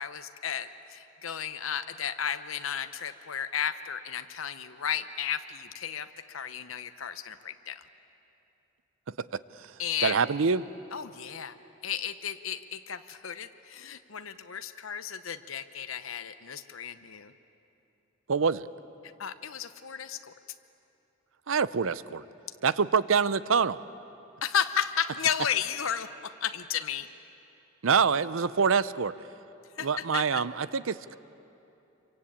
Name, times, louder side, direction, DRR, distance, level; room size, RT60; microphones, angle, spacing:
voice 1, 0.0-7.8 9.8-10.2 10.9-11.6 11.8-17.3 19.0-20.3 24.4-27.1 29.8-29.9 30.1-30.4, left 8 dB, 90° left, 10 dB, 0.9 m, -33 dB
voice 2, 10.0-10.6 18.3-18.7 21.5-22.2 22.6-23.8 27.8-29.1 29.8-31.2, right 5 dB, 75° right, 16 dB, 0.6 m, -25 dB
26.0 x 24.0 x 8.7 m, 2.9 s
head